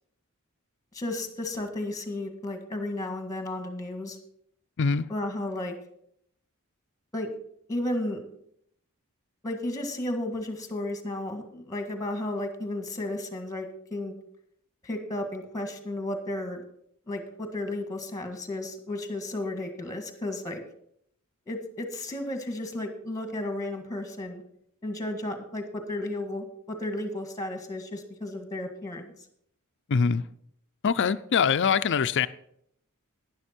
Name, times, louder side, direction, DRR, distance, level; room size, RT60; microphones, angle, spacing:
voice 1, 0.9-4.2 5.1-5.7 7.1-7.3 7.7-8.2 9.4-14.1 14.8-16.6 17.1-20.6 21.5-24.4 24.8-29.1, left 1 dB, 15° left, 1.6 m, -33 dB
voice 2, 29.9-30.2 30.8-32.3, left 6 dB, 55° left, 0.5 m, -23 dB
11.0 x 10.5 x 4.4 m
head